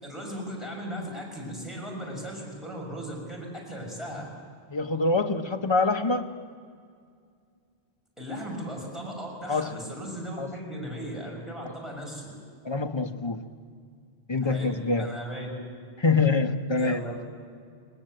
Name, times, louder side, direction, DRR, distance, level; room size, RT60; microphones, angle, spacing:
voice 1, 0.0-4.3 8.2-12.3 14.4-15.5 16.8-17.3, equal, ahead, 6.4 m, -37 dB
voice 2, 4.7-6.4 9.5-9.8 10.4-10.5 11.6-11.7 12.6-13.4 14.3-15.2 16.0-17.0, left 3 dB, 25° left, 0.9 m, -25 dB
21.0 x 20.0 x 7.9 m
omnidirectional pair, 1.1 m